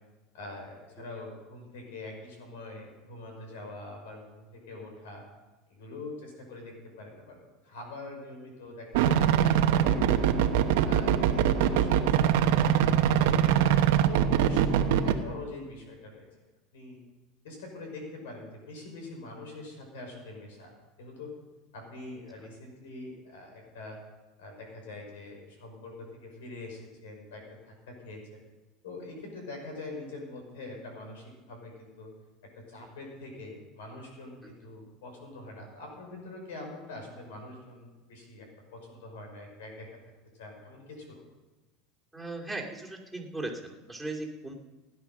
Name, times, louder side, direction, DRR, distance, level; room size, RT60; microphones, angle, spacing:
voice 1, 0.3-5.2 5.7-7.4 7.6-10.3 10.8-13.7 14.0-16.2 16.7-17.0 17.4-20.7 21.0-21.3 21.7-24.0 24.4-28.4 28.8-32.1 32.5-39.9 40.4-41.2, left 2 dB, 90° left, 2 dB, 5.5 m, -44 dB
sound 1, 8.9-15.2, right 9 dB, 75° right, 1.0 m, -23 dB
voice 2, 42.1-44.5, right 2 dB, ahead, -2 dB, 2.9 m, -37 dB
16.0 x 10.5 x 6.1 m, 1.2 s
supercardioid pair, 120°, 0 cm